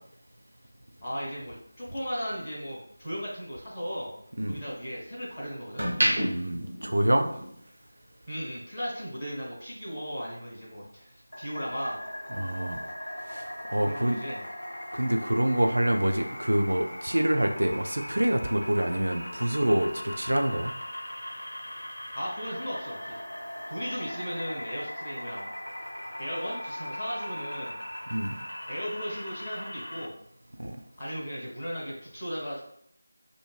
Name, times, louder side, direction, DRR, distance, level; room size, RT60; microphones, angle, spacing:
sound 1, 0.9-3.3 3.7-5.1 5.5-7.7 8.0-8.2, equal, 45° right, 0.9 m, -31 dB
voice 1, 1.0-4.1 4.5-5.9 8.3-12.0 13.8-14.4 22.1-23.2 23.7-25.5 26.2-27.8 28.7-30.1 31.0-32.6, equal, 10° left, -13 dB, 0.7 m, -36 dB
voice 2, 6.3-7.3 12.3-12.8 13.3-14.2 14.9-20.7 28.1-28.4 30.6-30.8, right 1 dB, 65° right, 5 dB, 0.3 m, -26 dB
sound 2, 11.3-30.1, equal, 70° left, 0.4 m, -39 dB
2.8 x 2.5 x 2.2 m, 0.69 s
figure-of-eight pair, 165°, 0 cm